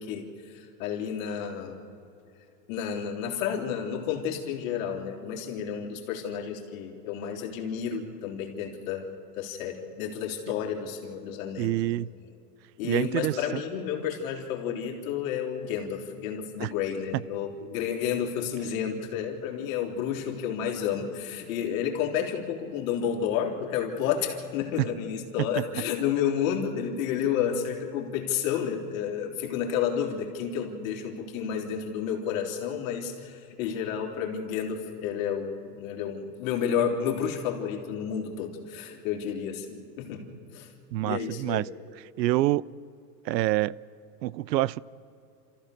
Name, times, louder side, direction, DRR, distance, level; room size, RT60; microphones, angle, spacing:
voice 1, 0.0-1.8 2.7-9.1 9.4-12.0 12.8-40.7 41.1-41.7, left 8 dB, 55° left, 3.4 m, -31 dB
voice 2, 11.6-12.1 12.8-13.6 16.6-16.7 40.9-41.7 42.2-42.6 43.2-43.7 44.2-44.8, right 16 dB, 85° right, 0.6 m, -26 dB
28.5 x 14.5 x 6.5 m
supercardioid pair, 145°, 49 cm